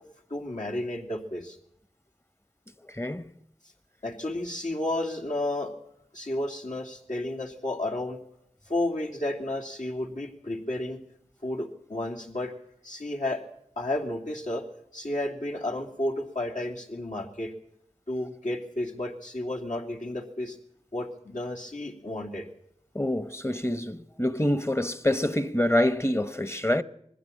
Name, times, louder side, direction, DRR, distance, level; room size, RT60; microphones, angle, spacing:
voice 1, 0.3-1.6 4.0-5.7 6.1-8.2 8.7-11.0 11.4-12.5 12.8-13.4 13.8-14.6 14.9-17.5 18.1-20.6 20.9-22.5, left 1 dB, 75° left, 2.7 m, -32 dB
voice 2, 2.8-3.3 22.9-26.8, left 1 dB, 20° left, 0.9 m, -26 dB
21.0 x 15.0 x 8.5 m
wide cardioid pair, 45°, 13 cm